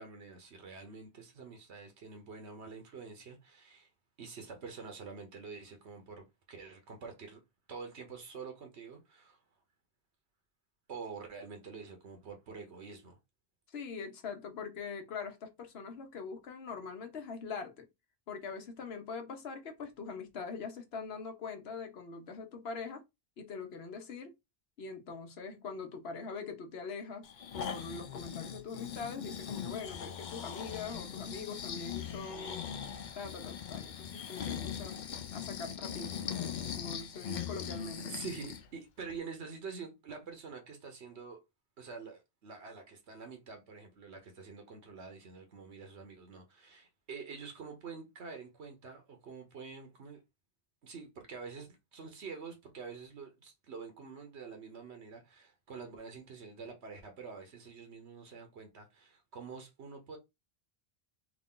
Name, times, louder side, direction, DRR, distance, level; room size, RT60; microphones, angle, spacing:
voice 1, 0.0-3.9 4.2-7.4 7.7-9.4 10.9-13.2 38.0-41.4 41.8-50.2 50.8-60.2, right 5 dB, 90° right, 1.2 m, -47 dB
voice 2, 13.7-17.9 18.3-23.0 23.4-24.3 24.8-32.6 33.1-35.0 35.3-38.2, left 5 dB, 70° left, 1.1 m, -43 dB
Breathing, 27.2-38.7 39.1-39.2, left 8 dB, 55° left, 0.6 m, -40 dB
3.6 x 2.5 x 3.7 m
omnidirectional pair, 1.1 m